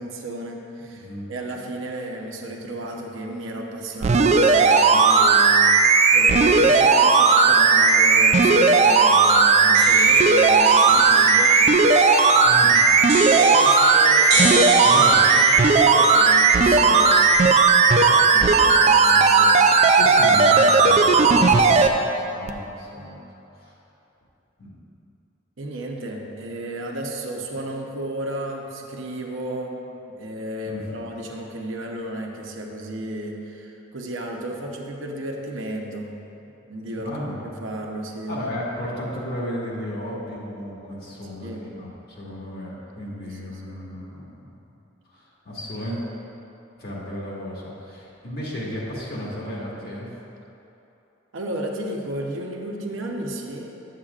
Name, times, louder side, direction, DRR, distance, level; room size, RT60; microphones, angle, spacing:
voice 1, 0.0-5.7 6.1-11.6 12.2-12.6 13.3-15.1 15.3-17.2 18.0-19.6 21.8-21.9 25.6-29.8 30.1-36.2 36.7-38.4 41.3-41.7 43.2-43.8 51.3-53.7, right 1 dB, 80° right, 0 dB, 0.8 m, -33 dB
sound 1, 4.0-21.9 22.5-22.6, right 4 dB, 35° right, 0.3 m, -16 dB
sound 2, 9.7-17.7, right 3 dB, 60° right, 1.2 m, -30 dB
voice 2, 12.4-13.0 14.8-15.2 19.8-21.9 22.3-23.2 23.6-23.7 24.6-24.7 30.6-31.0 36.9-37.5 38.3-44.5 45.1-46.0 46.8-50.1, left 1 dB, 50° left, -6 dB, 1.6 m, -34 dB
10.0 x 7.4 x 2.4 m, 3.0 s
head